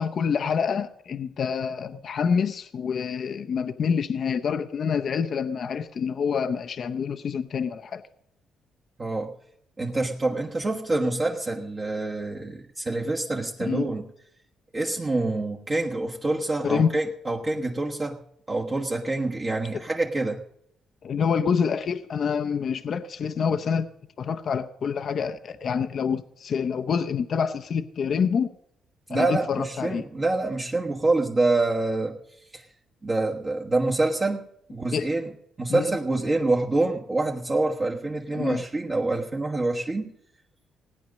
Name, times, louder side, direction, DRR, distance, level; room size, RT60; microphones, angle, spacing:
voice 1, 0.0-8.0 13.6-13.9 16.6-16.9 19.7-19.8 21.0-23.9 24.2-28.5 29.1-30.0 34.9-35.1 35.7-35.9 38.3-38.6, left 6 dB, 55° left, 9 dB, 0.7 m, -27 dB
voice 2, 9.0-9.3 9.8-14.1 14.7-18.2 18.5-20.4 29.1-32.2 32.5-32.6 33.0-34.4 34.7-35.3 35.6-40.1, right 2 dB, 30° right, -2 dB, 1.3 m, -26 dB
17.0 x 9.4 x 6.4 m, 0.74 s
cardioid pair, 90°, 0 cm